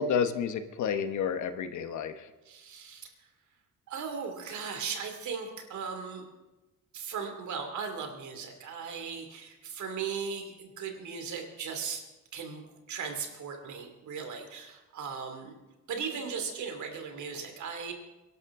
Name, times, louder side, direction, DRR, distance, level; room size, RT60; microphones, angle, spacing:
voice 1, 0.0-2.3, left 7 dB, 70° left, 10 dB, 1.2 m, -30 dB
voice 2, 2.5-3.3 3.9-6.2 6.9-12.0 12.3-15.6 15.9-17.9, right 6 dB, 70° right, 5 dB, 2.7 m, -37 dB
22.5 x 12.0 x 3.7 m, 1.1 s
cardioid pair, 90°, 30 cm